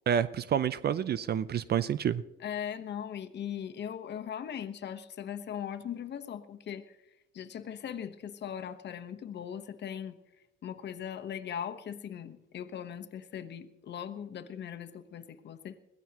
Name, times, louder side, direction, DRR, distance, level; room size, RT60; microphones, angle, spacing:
voice 1, 0.1-2.2, right 8 dB, 55° right, 15 dB, 0.6 m, -28 dB
voice 2, 2.4-7.0 7.3-10.2 10.6-15.8, left 9 dB, 60° left, 8 dB, 1.1 m, -39 dB
22.0 x 16.0 x 2.9 m, 0.92 s
cardioid pair, 90°, 20 cm